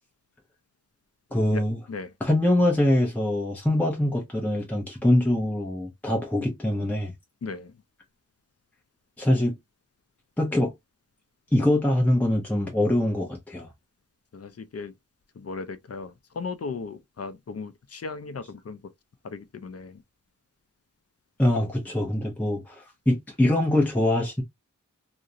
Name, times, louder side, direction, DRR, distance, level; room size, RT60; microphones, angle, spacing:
voice 1, 1.3-1.9 2.2-7.1 9.2-9.6 10.4-10.7 11.5-13.7 21.4-24.4, left 1 dB, 5° left, 0.6 m, -23 dB
voice 2, 7.4-7.8 14.3-14.9 15.3-18.8 19.2-20.0, left 4 dB, 50° left, 0.4 m, -36 dB
2.4 x 2.0 x 2.6 m
wide cardioid pair, 40°, 32 cm